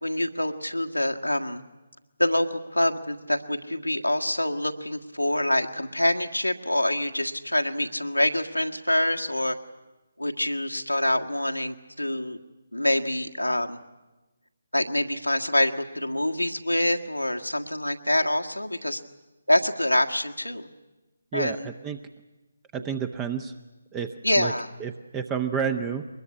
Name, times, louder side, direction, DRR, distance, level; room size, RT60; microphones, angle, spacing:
voice 1, 0.0-1.6 2.2-9.6 10.2-12.4 12.7-13.8 14.7-19.0 19.5-20.7 21.3-21.7 24.2-24.7, left 1 dB, 90° left, 3 dB, 1.7 m, -26 dB
voice 2, 21.3-22.0 22.7-23.5 23.9-24.5 24.8-26.1, right 7 dB, 15° right, 10 dB, 0.8 m, -30 dB
23.0 x 21.0 x 9.7 m, 1.1 s
figure-of-eight pair, 145°, 0 cm